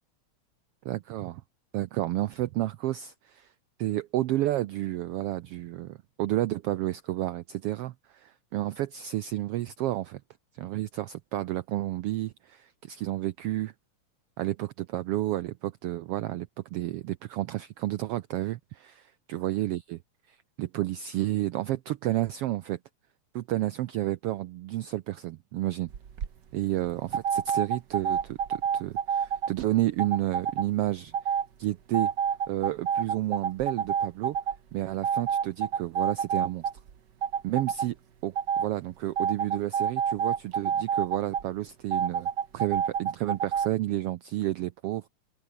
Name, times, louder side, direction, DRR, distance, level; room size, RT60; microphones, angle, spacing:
voice 1, 0.8-1.4 1.7-3.5 3.8-10.2 10.6-13.7 14.4-20.0 20.3-22.8 23.3-25.9 26.5-32.1 32.5-34.4 34.7-36.6 37.4-38.0 38.2-42.3 42.5-45.0, right 15 dB, 85° right, 1.3 m, -31 dB
sound 1, 25.9-26.3 27.1-29.5 30.0-30.7 31.1-31.5 31.9-34.6 35.0-36.9 37.2-37.9 38.4-38.7 39.2-41.4 41.9-43.7, right 7 dB, 45° right, 1.7 m, -28 dB
open air
omnidirectional pair, 3.4 m